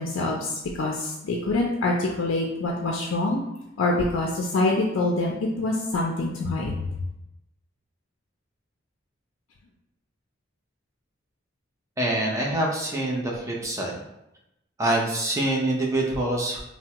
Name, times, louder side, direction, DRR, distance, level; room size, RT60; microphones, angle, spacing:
voice 1, 0.0-3.4 3.8-6.8, left 2 dB, 70° left, -1 dB, 0.4 m, -25 dB
voice 2, 12.0-13.9 14.8-16.6, right 1 dB, 15° right, -2 dB, 0.6 m, -25 dB
3.4 x 2.0 x 2.9 m, 0.87 s
head